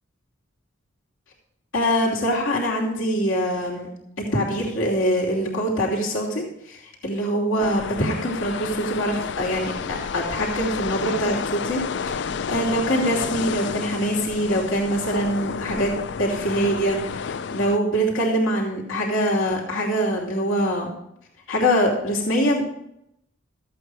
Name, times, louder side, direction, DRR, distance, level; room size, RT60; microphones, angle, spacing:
voice 1, 1.7-3.9 4.3-11.8 12.1-15.9 16.2-20.9 21.5-22.7, equal, 75° left, -2 dB, 2.9 m, -24 dB
sound 1, 7.6-17.8, left 6 dB, 55° left, 0.4 m, -30 dB
14.0 x 8.4 x 4.8 m, 0.77 s
head